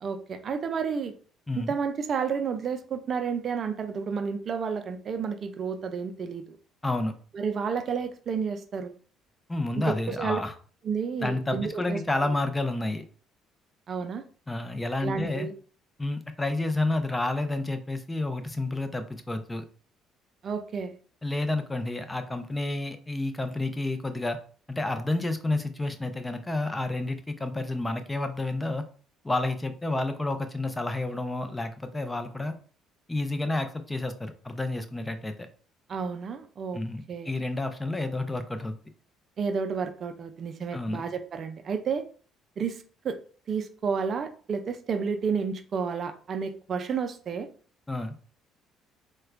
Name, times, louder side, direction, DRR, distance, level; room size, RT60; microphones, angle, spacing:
voice 1, 0.0-1.1 1.6-6.6 7.3-8.9 9.8-10.4 10.8-12.3 13.9-14.2 15.0-15.5 20.4-21.0 35.9-36.8 37.1-37.3 39.4-42.0 42.6-43.2 43.5-47.5, right 6 dB, 50° right, 9 dB, 0.4 m, -31 dB
voice 2, 6.8-7.1 9.5-10.5 11.2-13.0 14.5-15.5 16.0-19.6 21.2-24.4 24.7-28.8 29.2-32.5 33.1-35.5 36.7-38.8 40.7-41.0 47.9-48.1, left 2 dB, 15° left, 8 dB, 0.5 m, -30 dB
4.2 x 2.2 x 2.4 m, 0.42 s
supercardioid pair, 65°, 0 cm